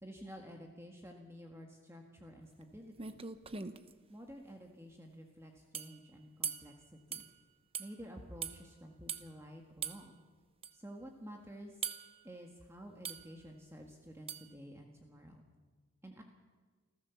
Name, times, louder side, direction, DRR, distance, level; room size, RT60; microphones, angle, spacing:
voice 1, 0.0-3.2 4.1-6.7 7.1-7.3 7.8-10.1 10.7-11.8 12.2-15.4 16.0-16.2, equal, 15° right, 2 dB, 1.7 m, -51 dB
sound 1, 2.6-2.7 3.0-3.9 5.7-6.0 6.4-6.7 7.1-7.3 7.7-7.9 8.4-8.6 9.1-9.3 9.8-10.0 10.6-10.7 11.8-12.1 13.0-13.3 14.3-14.5, right 7 dB, 30° right, 0.9 m, -40 dB
27.5 x 14.5 x 7.1 m, 1.4 s
head